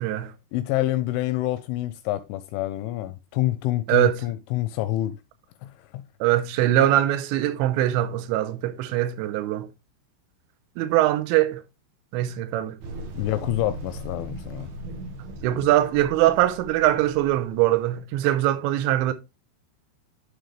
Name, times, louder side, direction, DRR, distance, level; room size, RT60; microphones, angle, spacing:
voice 1, 0.0-0.3 3.9-4.2 6.2-9.7 10.8-11.6 12.1-12.8 14.9-15.0 15.4-19.1, right 13 dB, 80° right, 2.6 m, -22 dB
voice 2, 0.5-5.2 5.6-6.0 13.2-14.7, left 15 dB, 85° left, 2.8 m, -27 dB
sound 1, 12.8-17.9, right 1 dB, 65° right, 2.7 m, -38 dB
11.5 x 3.9 x 3.2 m
omnidirectional pair, 5.9 m